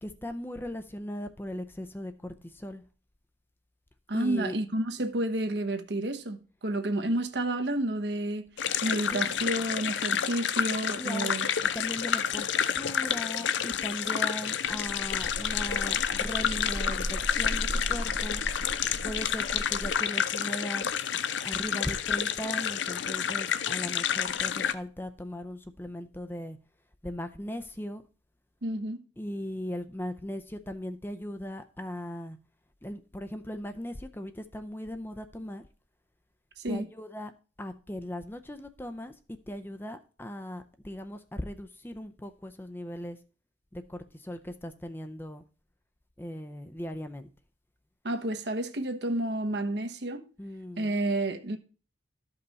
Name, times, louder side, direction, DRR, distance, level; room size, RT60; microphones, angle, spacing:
voice 1, 0.0-2.8 4.1-4.6 9.1-9.4 11.0-11.4 11.7-18.4 19.0-20.8 21.4-26.6 27.0-28.0 29.2-32.4 32.8-35.6 36.7-37.3 37.6-39.2 39.5-43.2 43.7-45.4 46.2-47.3 50.4-50.9, equal, 10° left, 0.5 m, -38 dB
voice 2, 4.1-8.5 8.8-11.5 28.6-29.0 36.6-36.9 48.0-50.2 50.8-51.6, right 1 dB, 65° right, 1.0 m, -30 dB
sound 1, 8.6-24.7, left 8 dB, 75° left, 0.6 m, -29 dB
sound 2, 14.6-19.9, equal, 35° right, 1.0 m, -37 dB
12.5 x 5.5 x 4.0 m
head